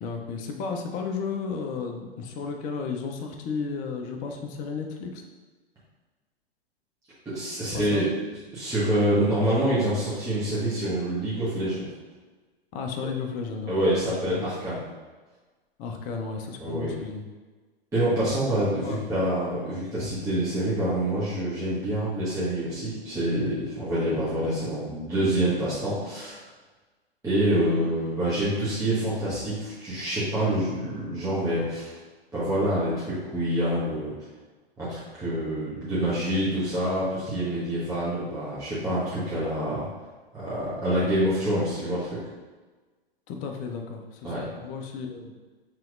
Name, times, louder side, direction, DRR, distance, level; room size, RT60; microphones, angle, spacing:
voice 1, 0.0-5.2 7.7-8.1 12.7-13.7 14.0-14.5 15.8-17.2 18.8-19.0 43.3-45.3, left 5 dB, 25° left, 3 dB, 0.5 m, -33 dB
voice 2, 7.2-8.0 8.5-11.8 13.7-14.8 16.6-16.9 17.9-26.4 27.2-32.0 32.3-34.1 34.8-39.9 40.3-42.2 44.2-44.5, right 1 dB, 10° right, -11 dB, 1.0 m, -26 dB
5.7 x 3.0 x 2.5 m, 1.3 s
figure-of-eight pair, 105°, 30 cm